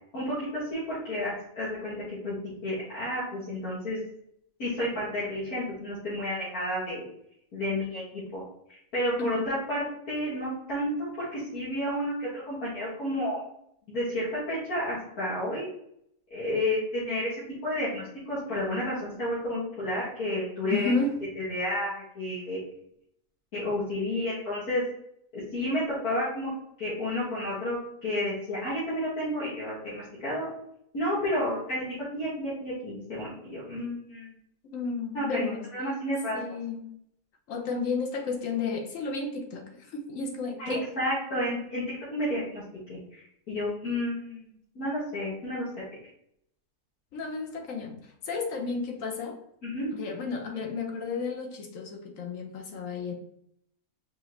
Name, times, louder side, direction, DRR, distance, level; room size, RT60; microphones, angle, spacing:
voice 1, 0.1-2.4 2.6-4.0 4.6-7.0 7.5-8.4 8.7-10.9 11.2-13.4 13.9-15.7 16.3-17.3 17.6-20.9 21.4-22.6 23.5-24.8 25.3-26.5 26.8-30.5 30.9-31.8 32.1-34.3 35.1-35.5 35.7-36.4 40.6-41.8 42.1-42.6 42.9-43.2 43.5-45.8 49.6-49.9, left 1 dB, 85° left, -10 dB, 2.2 m, -31 dB
voice 2, 20.7-21.2 34.6-35.7 36.3-36.9 37.5-40.9 47.1-49.4 49.9-53.1, left 4 dB, 65° left, 3 dB, 1.1 m, -32 dB
4.7 x 2.9 x 3.1 m, 0.71 s
omnidirectional pair, 1.5 m